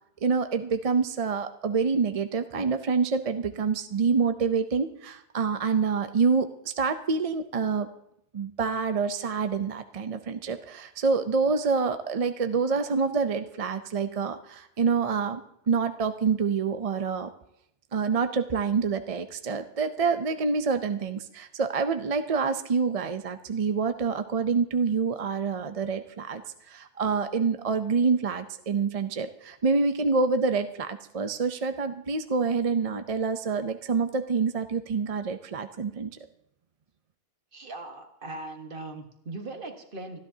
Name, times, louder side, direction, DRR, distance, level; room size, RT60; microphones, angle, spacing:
voice 1, 0.2-7.9 8.3-15.4 15.7-17.3 17.9-36.1, right 5 dB, 40° right, 9 dB, 0.6 m, -27 dB
voice 2, 37.5-40.2, right 2 dB, 60° right, 5 dB, 1.6 m, -39 dB
25.0 x 13.0 x 2.7 m, 0.77 s
omnidirectional pair, 1.0 m